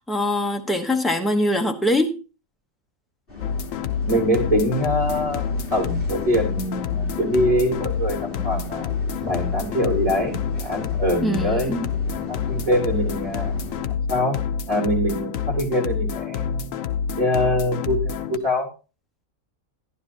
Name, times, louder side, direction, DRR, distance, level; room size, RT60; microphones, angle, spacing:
voice 1, 0.0-2.2 11.2-11.9, left 1 dB, ahead, 0.9 m, -23 dB
sound 1, 3.3-13.9, left 2 dB, 45° left, 3.9 m, -38 dB
sound 2, 3.4-18.4, left 7 dB, 85° left, 1.1 m, -28 dB
voice 2, 4.0-8.9 9.2-11.8 12.3-13.5 14.1-14.4 14.7-16.7 17.2-18.7, equal, 25° right, 3.3 m, -24 dB
12.5 x 11.0 x 2.9 m
omnidirectional pair, 1.4 m